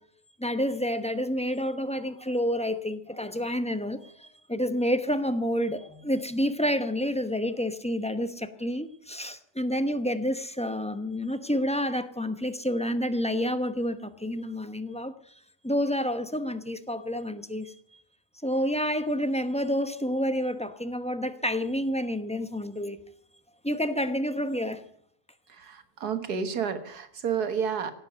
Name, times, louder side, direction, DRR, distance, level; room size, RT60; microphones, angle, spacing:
voice 1, 0.4-15.1 15.6-17.8 18.4-23.0 23.6-24.8, equal, 5° left, 9 dB, 0.7 m, -29 dB
voice 2, 25.5-27.9, right 7 dB, 90° right, 9 dB, 1.9 m, -30 dB
17.0 x 7.8 x 9.3 m, 0.66 s
omnidirectional pair, 1.6 m